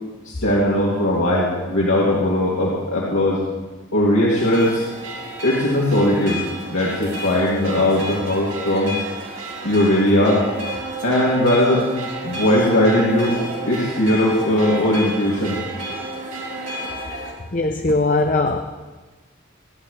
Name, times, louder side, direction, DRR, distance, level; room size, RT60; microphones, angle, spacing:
voice 1, 0.2-3.4 3.9-4.8 5.4-6.4 6.7-8.9 9.6-10.4 11.0-11.8 12.2-13.4 13.6-15.6, left 1 dB, 80° left, -6 dB, 2.8 m, -19 dB
sound 1, 4.4-17.3, right 1 dB, 75° right, 3.3 m, -31 dB
voice 2, 17.5-18.6, left 2 dB, 40° left, 5 dB, 0.7 m, -19 dB
27.5 x 11.0 x 3.3 m, 1.2 s
head